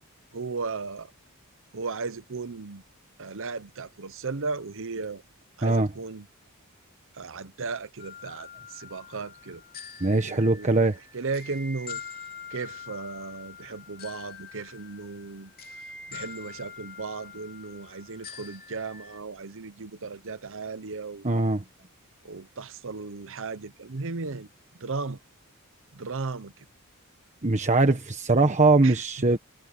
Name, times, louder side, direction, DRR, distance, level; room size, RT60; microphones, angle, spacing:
voice 1, 0.3-1.1 1.7-2.8 3.2-5.2 5.6-6.3 7.1-9.6 10.2-10.7 11.1-12.0 12.5-15.5 16.1-21.3 22.2-24.5 24.8-25.2 25.9-26.5 28.8-29.0 29.3-29.4, right 4 dB, 60° right, 0.9 m, -35 dB
sound 1, 8.0-19.2, left 6 dB, 40° left, 3.1 m, -44 dB
voice 2, 10.0-11.0 21.2-21.6 27.4-29.4, right 2 dB, 30° right, 1.3 m, -21 dB
head